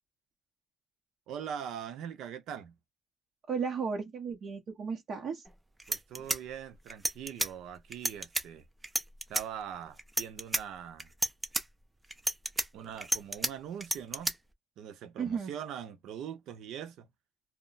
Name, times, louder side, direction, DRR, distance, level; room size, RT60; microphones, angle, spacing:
voice 1, 1.3-2.8 5.9-8.7 9.3-11.1 12.7-14.3 14.8-17.1, right 9 dB, 85° right, 0.5 m, -42 dB
voice 2, 3.5-5.4 15.2-15.5, right 6 dB, 60° right, 0.9 m, -34 dB
sound 1, 5.5-5.6 5.8-7.5 7.9-8.4 8.8-9.4 10.0-10.6 11.0-11.6 12.1-13.5 13.8-14.3, right 2 dB, 20° right, 0.5 m, -31 dB
2.2 x 2.0 x 3.8 m
cardioid pair, 90°, 0 cm